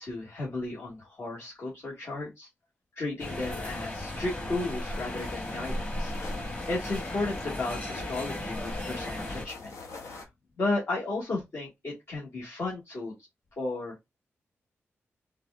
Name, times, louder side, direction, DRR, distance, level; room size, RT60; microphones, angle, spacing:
voice 1, 0.0-2.5 2.9-6.1 6.7-9.7 10.6-13.1 13.6-14.0, left 2 dB, 60° left, -4 dB, 1.3 m, -34 dB
sound 1, 3.2-9.5, left 1 dB, 30° left, 1.5 m, -35 dB
sound 2, 5.1-10.2, left 3 dB, 85° left, 0.8 m, -46 dB
4.0 x 2.2 x 2.2 m, 0.19 s
cardioid pair, 65°, 5 cm